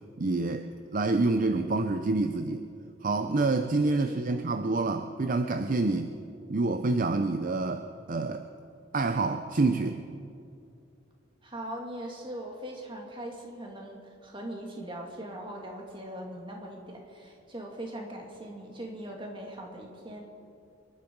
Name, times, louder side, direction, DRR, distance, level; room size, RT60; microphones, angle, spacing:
voice 1, 0.2-0.7 0.9-2.6 3.0-6.1 6.5-8.4 8.9-10.0, right 3 dB, 45° right, 8 dB, 0.6 m, -27 dB
voice 2, 4.1-4.4 11.4-20.3, right 1 dB, 25° right, 0 dB, 2.3 m, -40 dB
25.5 x 11.5 x 4.7 m, 2.5 s
head